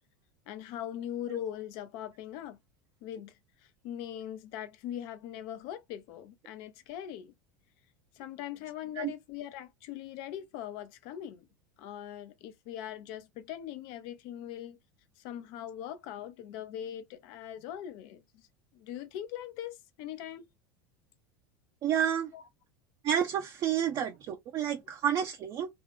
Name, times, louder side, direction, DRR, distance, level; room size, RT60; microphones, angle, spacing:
voice 1, 0.5-2.6 3.0-3.3 3.8-7.3 8.1-11.5 11.8-14.8 15.2-18.4 18.7-20.5 22.3-22.4, left 11 dB, 50° left, 0.6 m, -41 dB
voice 2, 21.8-22.3 23.0-25.7, right 9 dB, 40° right, 0.6 m, -30 dB
3.4 x 2.4 x 3.5 m
figure-of-eight pair, 75°, 11 cm